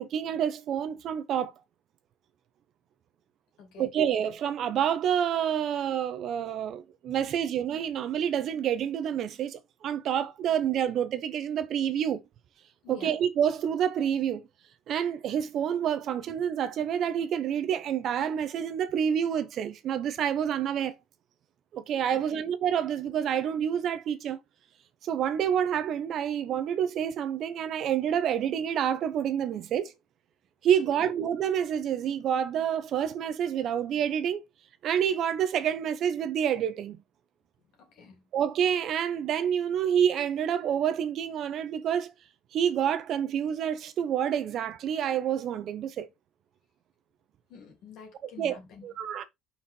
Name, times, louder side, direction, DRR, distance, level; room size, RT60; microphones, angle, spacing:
voice 1, 0.0-1.5 3.8-12.2 12.9-14.4 14.9-21.0 21.7-24.4 25.0-29.9 30.6-34.4 34.8-37.0 38.3-42.1 42.5-46.1 48.2-49.2, right 9 dB, 45° right, 0.8 m, -28 dB
voice 2, 22.1-22.4 31.0-31.1 37.9-38.2 47.5-48.9, left 6 dB, 60° left, 2.9 m, -49 dB
5.7 x 4.2 x 4.4 m
cardioid pair, 165°, 0 cm